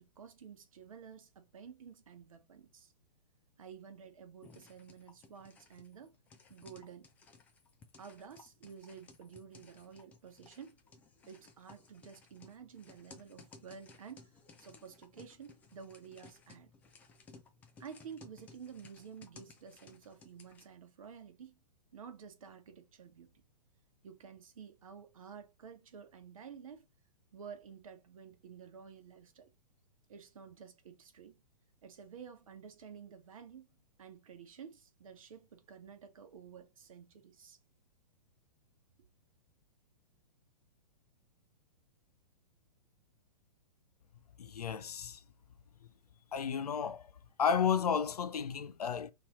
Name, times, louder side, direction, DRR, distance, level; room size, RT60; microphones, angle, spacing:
voice 1, 0.0-2.9 3.6-6.1 6.5-7.1 8.0-10.8 11.3-14.3 14.6-16.7 17.8-21.6 21.9-23.4 24.0-26.9 27.3-29.5 30.1-31.4 31.8-33.7 34.0-37.6, right 7 dB, 55° right, 0.9 m, -51 dB
sound 1, 4.4-20.7, left 4 dB, 5° left, 0.3 m, -59 dB
voice 2, 44.4-45.2 46.3-47.1 47.4-49.1, left 7 dB, 65° left, 0.5 m, -32 dB
3.2 x 2.7 x 4.1 m
figure-of-eight pair, 115°, 21 cm